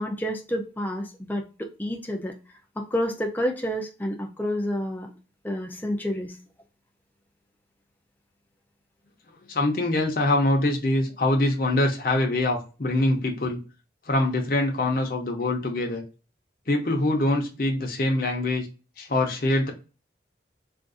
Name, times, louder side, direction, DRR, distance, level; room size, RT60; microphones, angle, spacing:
voice 1, 0.0-2.3 2.8-5.1 5.4-6.3, equal, 10° left, 1 dB, 0.5 m, -29 dB
voice 2, 9.5-13.6 14.1-16.0 16.7-18.7 19.0-19.7, left 2 dB, 50° left, 1 dB, 0.8 m, -24 dB
3.6 x 2.5 x 2.5 m, 0.32 s
head